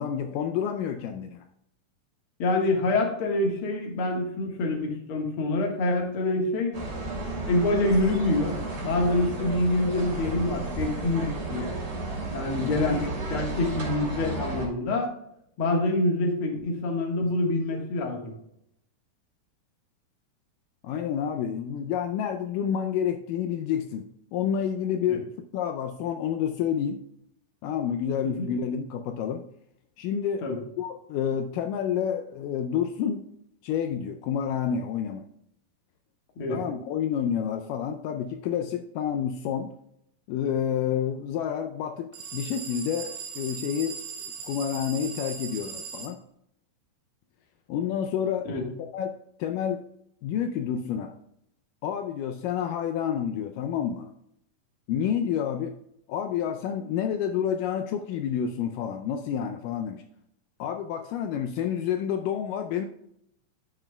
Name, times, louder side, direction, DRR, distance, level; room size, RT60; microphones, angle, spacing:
voice 1, 0.0-1.4 12.6-12.8 20.8-24.1 24.3-25.2 25.5-27.0 27.6-29.4 30.0-30.4 30.8-33.2 33.6-35.2 36.5-39.7 40.3-44.0 44.4-46.2 47.7-48.5 48.9-49.1 49.4-49.8 50.2-51.1 51.8-54.1 54.9-55.7 56.1-60.0 60.6-62.9, left 8 dB, 90° left, 6 dB, 1.9 m, -29 dB
voice 2, 2.4-6.7 7.5-11.7 12.3-15.1 15.6-18.2 25.1-25.2 28.2-28.5 30.4-30.6 36.4-36.6 48.5-48.6, left 2 dB, 55° left, 1 dB, 1.6 m, -26 dB
sound 1, 6.7-14.7, right 2 dB, 35° right, 3.1 m, -33 dB
sound 2, 42.1-46.1, right 6 dB, 70° right, 2.7 m, -38 dB
13.0 x 6.0 x 2.2 m, 0.75 s
omnidirectional pair, 4.4 m